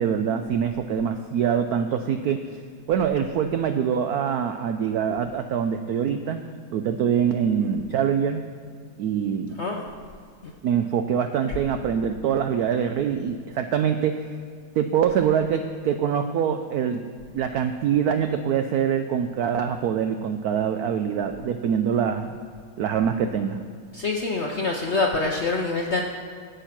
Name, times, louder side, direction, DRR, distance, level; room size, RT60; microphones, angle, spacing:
voice 1, 0.0-2.5 2.9-8.5 9.0-9.6 10.6-14.3 14.8-22.4 22.8-23.6, right 8 dB, 90° right, 8 dB, 0.8 m, -24 dB
voice 2, 23.9-26.0, left 3 dB, 60° left, 0 dB, 0.7 m, -25 dB
12.5 x 8.1 x 5.9 m, 2.1 s
omnidirectional pair, 2.2 m